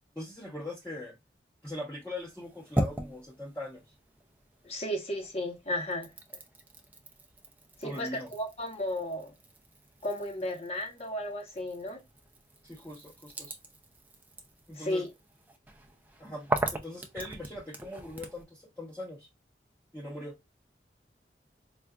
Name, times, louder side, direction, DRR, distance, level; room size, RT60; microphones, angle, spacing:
voice 1, 0.2-1.2 1.6-3.8 7.8-8.3 12.6-13.6 14.7-15.0 16.2-19.3 19.9-20.3, left 1 dB, 10° left, 0.9 m, -41 dB
sound 1, 2.2-4.8 5.2-18.4, right 1 dB, 10° right, 0.4 m, -39 dB
voice 2, 4.6-6.1 7.8-9.3 10.0-12.0 14.7-15.1, left 1 dB, 35° left, 0.9 m, -34 dB
4.6 x 2.4 x 2.3 m
head